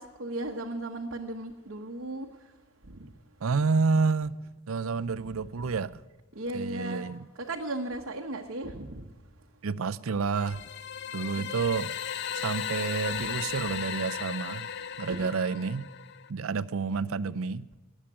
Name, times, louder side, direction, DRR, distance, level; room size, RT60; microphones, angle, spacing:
voice 1, 0.0-2.3 5.2-5.3 6.4-7.0 7.5-9.0 15.1-15.3, right 2 dB, 70° right, 1.1 m, -35 dB
voice 2, 3.4-4.4 4.7-6.0 6.5-7.3 9.6-10.6 11.1-11.9 12.3-14.7 15.0-15.9 16.3-17.7, right 4 dB, 85° right, 0.5 m, -29 dB
sound 1, 10.4-16.3, left 8 dB, 55° left, 0.5 m, -36 dB
19.5 x 7.4 x 9.9 m
head